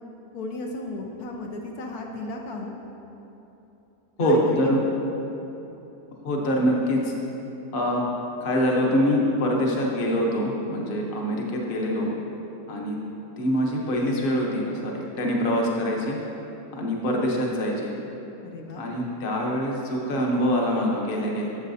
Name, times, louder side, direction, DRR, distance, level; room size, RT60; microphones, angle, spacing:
voice 1, 0.3-2.7 4.2-4.7 18.4-19.0, left 2 dB, 70° left, 0 dB, 1.2 m, -35 dB
voice 2, 4.2-4.8 6.2-7.0 7.7-8.1 8.4-12.1 12.7-13.0 13.4-16.2 16.7-17.9 18.8-21.5, equal, 40° left, -1 dB, 1.0 m, -24 dB
12.0 x 7.3 x 2.7 m, 3.0 s
omnidirectional pair, 1.7 m